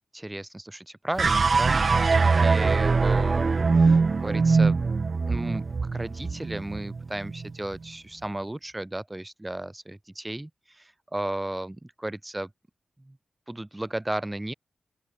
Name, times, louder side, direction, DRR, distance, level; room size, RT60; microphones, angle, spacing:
voice 1, 0.1-4.8 5.3-12.5 13.0-13.2 13.5-14.5, right 1 dB, 15° right, 1.6 m, -34 dB
sound 1, 1.2-7.6, right 4 dB, 50° right, 0.4 m, -22 dB
open air
cardioid pair, 65°, 0 cm